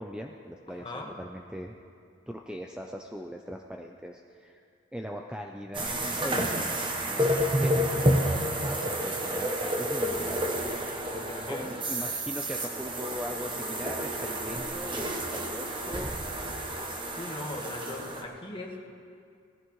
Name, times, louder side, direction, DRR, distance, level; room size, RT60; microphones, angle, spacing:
voice 1, 0.0-1.7 2.3-4.6 4.9-6.0 6.2-10.7 11.5-16.2, equal, 5° right, 2 dB, 0.4 m, -40 dB
voice 2, 0.7-1.1 11.1-11.7 16.9-18.9, left 2 dB, 25° left, -1 dB, 1.4 m, -40 dB
sound 1, 5.7-18.2, right 1 dB, 25° right, 1.0 m, -30 dB
19.5 x 14.5 x 3.1 m, 2.3 s
head